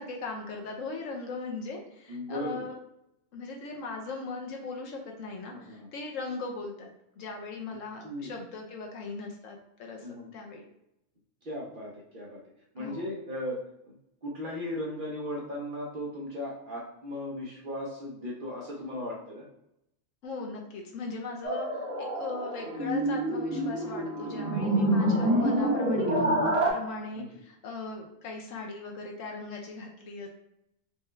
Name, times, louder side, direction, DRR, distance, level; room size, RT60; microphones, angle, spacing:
voice 1, 0.0-2.7 3.3-6.9 7.2-10.1 10.3-10.6 12.8-13.1 20.2-30.3, left 3 dB, 70° left, 1 dB, 1.0 m, -39 dB
voice 2, 2.1-2.6 5.5-5.9 8.0-8.3 10.0-10.3 11.4-12.4 12.7-13.6 13.8-13.9 14.2-19.4 27.1-27.3, left 1 dB, 45° right, -4 dB, 0.8 m, -37 dB
sound 1, 21.4-26.7, right 1 dB, 80° right, 1.4 m, -27 dB
4.4 x 2.3 x 3.1 m, 0.82 s
omnidirectional pair, 1.5 m